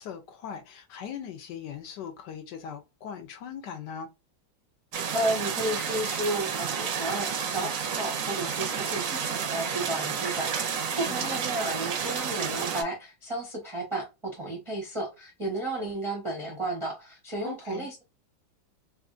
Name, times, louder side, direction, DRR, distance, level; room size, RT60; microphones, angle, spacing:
voice 1, 0.0-4.1 10.9-11.4 17.4-17.9, left 7 dB, 70° left, 1.1 m, -40 dB
sound 1, 4.9-12.8, right 6 dB, 70° right, 0.8 m, -31 dB
voice 2, 5.1-18.0, right 1 dB, 35° right, 0.5 m, -33 dB
3.4 x 2.5 x 2.4 m
omnidirectional pair, 2.1 m